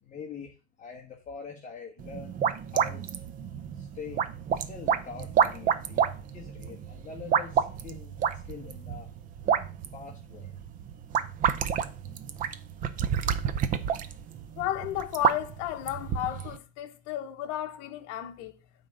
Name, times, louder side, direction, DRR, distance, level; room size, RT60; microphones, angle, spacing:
voice 1, 0.0-2.4 2.7-3.2 3.7-4.2 4.7-8.2 8.4-9.1 9.9-10.5, left 6 dB, 20° left, 1.2 m, -44 dB
sound 1, 2.0-16.6, right 8 dB, 25° right, 0.5 m, -29 dB
voice 2, 14.6-18.6, left 12 dB, 45° left, 1.1 m, -33 dB
9.0 x 3.7 x 6.6 m
supercardioid pair, 145°, 35 cm